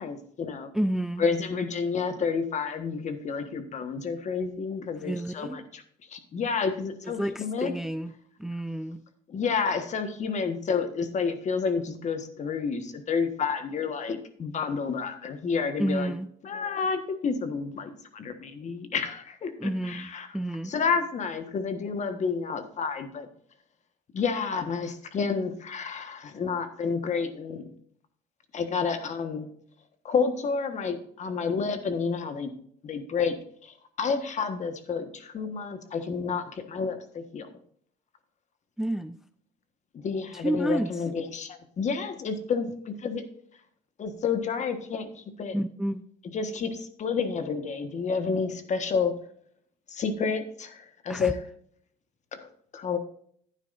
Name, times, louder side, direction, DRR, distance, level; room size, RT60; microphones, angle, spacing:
voice 1, 0.0-0.7 1.2-5.8 6.1-7.7 9.3-16.1 16.4-20.3 20.6-23.3 24.1-27.7 28.5-29.5 30.0-32.5 32.8-33.3 33.6-37.5 40.0-43.2 44.0-45.6 46.3-49.1 49.9-51.4 52.3-53.0, left 5 dB, 45° left, 1.4 m, -30 dB
voice 2, 0.7-1.3 5.0-5.6 7.2-8.1 8.4-9.0 15.8-16.3 19.6-20.1 20.3-20.7 38.8-39.2 40.3-41.0 45.5-46.0 51.1-51.3, right 1 dB, ahead, 0.3 m, -30 dB
11.5 x 9.6 x 2.6 m
cardioid pair, 110°, 17 cm